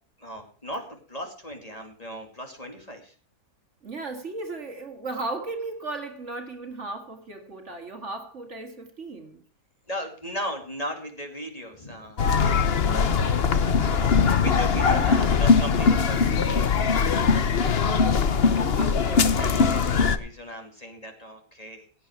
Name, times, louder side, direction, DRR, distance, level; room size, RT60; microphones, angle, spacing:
voice 1, 0.2-3.1 9.9-12.2 14.1-16.6 18.9-21.9, equal, 25° left, 2.5 m, -37 dB
voice 2, 3.8-9.4 12.8-13.2 14.9-15.4 17.8-18.3 18.8-19.3, right 3 dB, 50° right, 2.0 m, -36 dB
sound 1, 12.2-20.2, left 5 dB, 45° left, 1.1 m, -21 dB
16.5 x 8.7 x 4.7 m
omnidirectional pair, 1.7 m